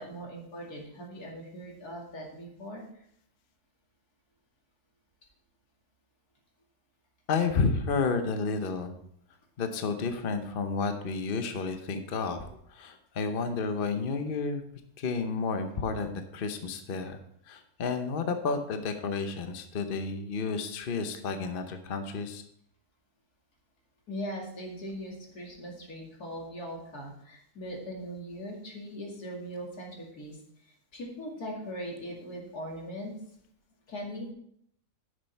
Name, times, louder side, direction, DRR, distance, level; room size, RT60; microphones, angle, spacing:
voice 1, 0.0-3.0 24.1-33.1 33.9-34.3, equal, 70° left, -1 dB, 2.8 m, -40 dB
voice 2, 7.3-8.9 9.6-14.6 15.0-17.2 17.5-22.4, left 4 dB, 45° left, 7 dB, 0.8 m, -31 dB
10.5 x 6.5 x 4.5 m, 0.69 s
omnidirectional pair, 1.7 m